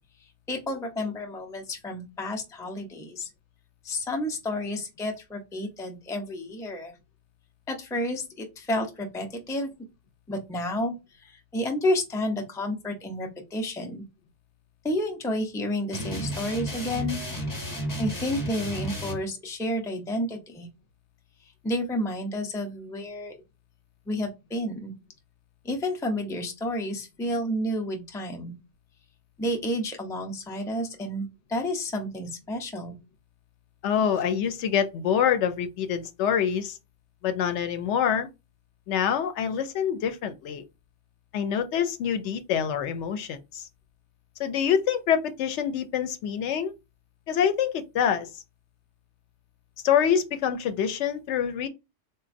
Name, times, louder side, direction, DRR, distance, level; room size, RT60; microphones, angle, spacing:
voice 1, 0.5-3.3 3.8-6.9 7.7-9.7 10.3-14.0 14.8-17.2 18.0-20.7 21.6-23.3 24.1-24.9 25.6-28.5 29.4-32.9, left 1 dB, 5° left, 0.3 m, -30 dB
sound 1, 15.9-19.2, equal, 20° left, 0.7 m, -32 dB
voice 2, 33.8-36.8 37.2-38.3 38.9-40.6 41.3-43.7 44.4-46.7 47.3-48.4 49.8-51.7, left 8 dB, 80° left, 0.9 m, -26 dB
3.9 x 2.2 x 2.5 m
omnidirectional pair, 1.2 m